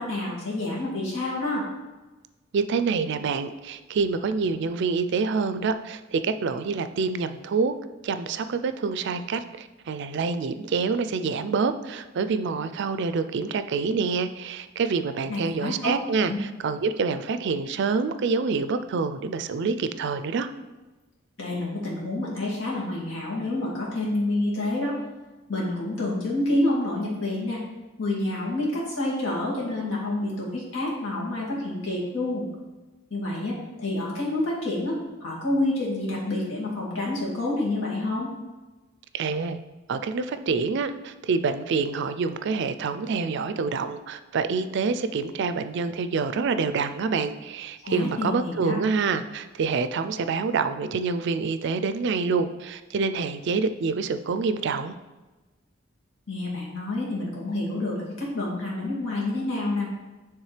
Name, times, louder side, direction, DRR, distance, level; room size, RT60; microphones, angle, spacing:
voice 1, 0.0-1.7 15.3-15.9 16.3-16.4 21.4-24.9 25.5-27.6 28.0-32.5 33.1-38.3 47.8-48.8 56.3-59.9, left 2 dB, 85° left, -5 dB, 2.1 m, -28 dB
voice 2, 2.5-7.7 8.0-20.5 39.1-39.6 39.9-55.0, right 4 dB, 60° right, 11 dB, 0.4 m, -27 dB
9.4 x 3.5 x 3.2 m, 1.2 s
head